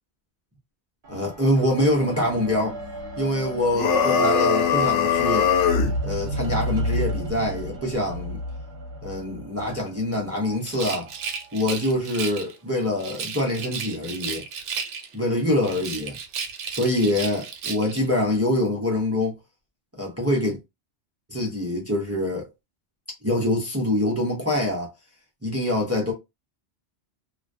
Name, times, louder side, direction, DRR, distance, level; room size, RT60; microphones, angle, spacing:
sound 1, 1.0-10.6 11.4-11.5, equal, 55° right, 0.8 m, -32 dB
voice 1, 1.1-2.8 3.2-5.5 6.0-8.4 9.0-11.1 11.5-14.4 15.1-16.2 16.7-19.4 20.0-20.6 21.3-22.5 23.2-24.9 25.4-26.1, left 1 dB, 20° right, 0.4 m, -25 dB
sound 2, 3.7-6.0, left 7 dB, 90° left, 0.9 m, -21 dB
Rattle, 10.6-12.5 13.0-15.2 15.6-18.1, right 6 dB, 90° right, 0.9 m, -34 dB
2.3 x 2.2 x 2.5 m
omnidirectional pair, 1.2 m